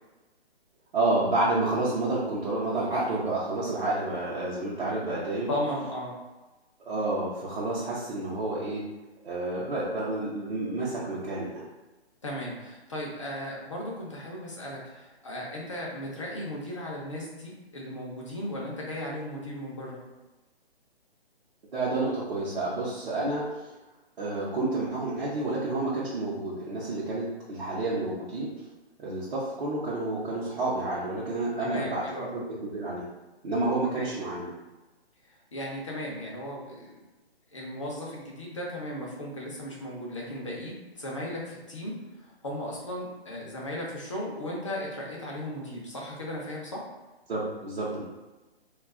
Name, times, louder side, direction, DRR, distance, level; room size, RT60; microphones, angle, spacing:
voice 1, 0.9-5.5 6.8-8.8 9.2-11.7 21.7-23.7 24.2-28.5 29.0-32.1 32.3-33.0 33.4-34.5 47.3-48.0, right 2 dB, 55° right, -8 dB, 0.8 m, -29 dB
voice 2, 5.5-6.1 12.2-20.0 31.6-32.3 33.9-34.1 35.5-37.0 37.5-41.9 42.2-46.8, left 1 dB, 30° left, -3 dB, 0.5 m, -36 dB
2.3 x 2.3 x 3.5 m, 1.1 s
hypercardioid pair, 170°, 33 cm